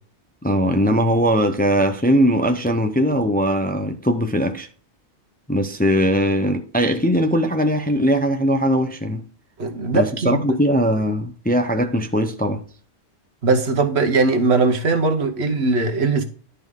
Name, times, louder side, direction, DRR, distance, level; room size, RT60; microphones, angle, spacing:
voice 1, 0.4-4.7 5.5-9.2 9.9-12.6, equal, 10° left, 0.6 m, -20 dB
voice 2, 9.6-10.6 13.4-16.3, right 3 dB, 70° right, 1.4 m, -20 dB
11.0 x 5.4 x 3.7 m
omnidirectional pair, 1.2 m